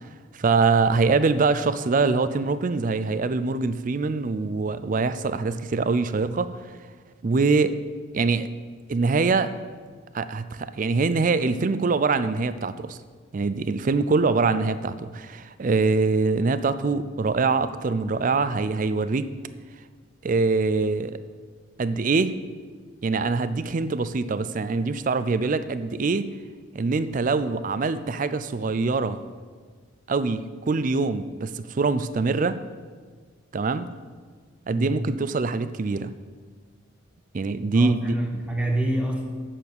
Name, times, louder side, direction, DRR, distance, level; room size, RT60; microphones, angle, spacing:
voice 1, 0.3-6.5 7.2-7.8 8.1-8.5 8.9-9.5 10.1-13.0 13.3-19.3 20.2-21.2 21.8-22.4 23.0-26.3 26.7-29.2 30.1-32.6 33.5-33.9 34.7-36.1 37.3-38.1, right 4 dB, 40° right, 13 dB, 0.4 m, -24 dB
voice 2, 37.7-39.2, right 1 dB, 5° right, 1 dB, 1.0 m, -26 dB
7.4 x 6.8 x 8.1 m, 1.5 s
head